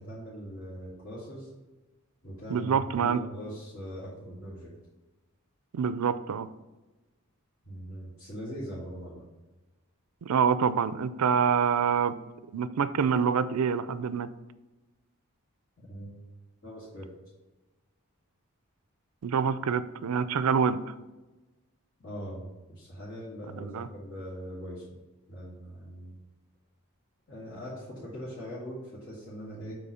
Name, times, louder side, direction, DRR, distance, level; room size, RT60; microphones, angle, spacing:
voice 1, 0.0-1.5 2.2-2.7 2.9-4.7 7.6-9.2 15.8-16.2 16.6-17.1 22.0-25.0 25.3-26.2 27.3-29.7, equal, 65° left, -10 dB, 2.4 m, -41 dB
voice 2, 2.5-3.2 5.7-6.5 10.2-12.2 12.5-14.3 19.2-20.9 23.6-23.9, right 6 dB, 85° right, 14 dB, 0.4 m, -26 dB
7.9 x 3.2 x 5.6 m, 1.1 s
head